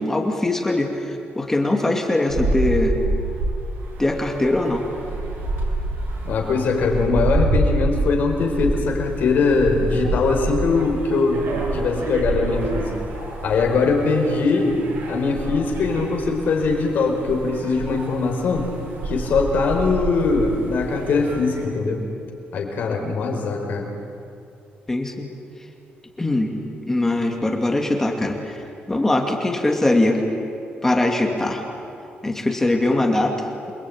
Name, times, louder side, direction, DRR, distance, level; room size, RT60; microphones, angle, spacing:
voice 1, 0.0-3.0 4.0-4.8 24.9-25.3 26.2-26.5 26.9-28.6 28.9-30.3 30.8-31.6 32.2-33.3, left 2 dB, 10° left, 2 dB, 2.4 m, -21 dB
sound 1, 2.3-21.6, right 2 dB, 80° right, 7.9 m, -27 dB
voice 2, 6.2-11.5 11.7-12.9 13.4-14.8 15.1-18.7 19.0-22.0 22.5-23.9, left 4 dB, 55° left, 2 dB, 4.7 m, -21 dB
28.5 x 23.5 x 8.9 m, 2.6 s
cardioid pair, 165°, 4 cm